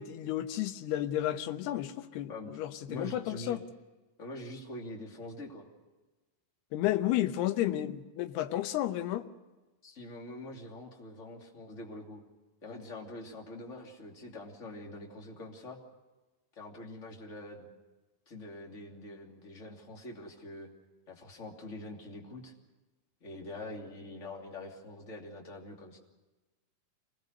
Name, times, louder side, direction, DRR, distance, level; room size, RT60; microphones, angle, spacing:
voice 1, 0.0-3.6 6.7-9.3, left 13 dB, 85° left, 3.0 m, -32 dB
voice 2, 2.2-3.7 4.2-5.7 9.8-12.2 12.6-15.8 16.6-17.7 18.3-20.7 21.1-22.5 23.2-26.0, left 1 dB, 20° left, 2.5 m, -44 dB
26.5 x 18.5 x 6.6 m
omnidirectional pair, 4.6 m